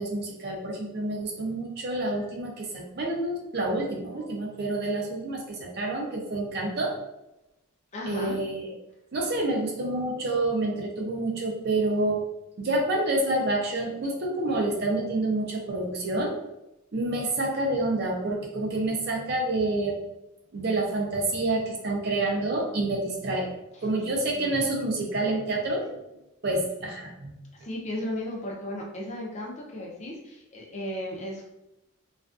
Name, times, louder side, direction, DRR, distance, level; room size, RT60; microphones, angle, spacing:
voice 1, 0.0-6.9 8.1-8.7 9.1-12.2 12.6-16.3 16.9-20.0 20.5-23.5 23.8-25.9 26.4-27.3, right 2 dB, 50° right, 0 dB, 0.5 m, -28 dB
voice 2, 7.9-8.4 24.3-24.6 27.5-31.5, left 1 dB, 30° left, -2 dB, 0.5 m, -35 dB
2.4 x 2.3 x 2.3 m, 0.92 s
head